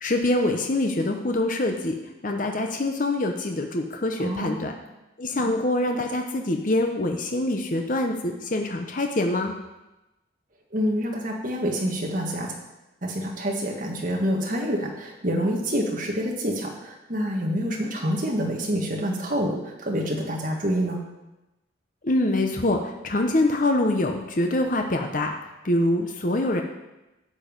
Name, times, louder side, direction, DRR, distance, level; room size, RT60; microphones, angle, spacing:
voice 1, 0.0-1.9 2.2-4.7 5.2-9.5 22.0-25.4 25.6-26.6, left 1 dB, 40° left, 3 dB, 0.8 m, -24 dB
voice 2, 4.2-4.7 10.7-12.5 13.0-21.0, equal, 45° right, -1 dB, 1.9 m, -27 dB
11.5 x 7.0 x 5.3 m, 1.0 s
head